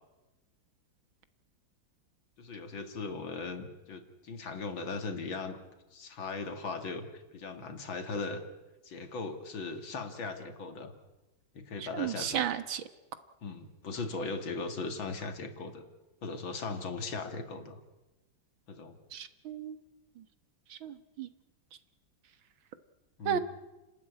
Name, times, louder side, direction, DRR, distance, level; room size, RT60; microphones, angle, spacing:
voice 1, 2.4-5.6 5.9-8.4 8.8-10.9 11.5-12.5 13.4-15.8 16.2-17.8 18.7-19.0 23.2-23.4, left 4 dB, 85° left, 6 dB, 2.9 m, -38 dB
voice 2, 11.9-12.8 19.1-19.8 20.8-21.3 23.3-23.4, right 9 dB, 85° right, 11 dB, 2.1 m, -33 dB
30.0 x 12.5 x 9.7 m, 1.1 s
omnidirectional pair, 2.1 m